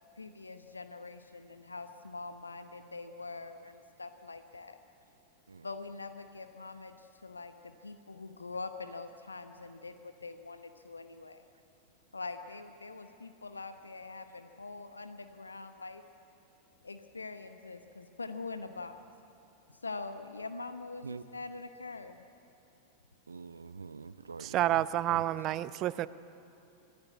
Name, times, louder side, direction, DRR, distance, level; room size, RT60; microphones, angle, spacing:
voice 1, 0.2-4.8 5.6-11.4 12.1-16.0 16.8-19.0 19.8-22.2, left 3 dB, 80° left, 9 dB, 0.9 m, -44 dB
voice 2, 23.3-24.8 25.1-25.2 25.5-25.6, right 4 dB, 75° right, 15 dB, 0.7 m, -45 dB
voice 3, 24.4-26.1, right 14 dB, 35° right, 17 dB, 0.6 m, -29 dB
25.5 x 16.0 x 9.5 m, 2.8 s
figure-of-eight pair, 90°, 0 cm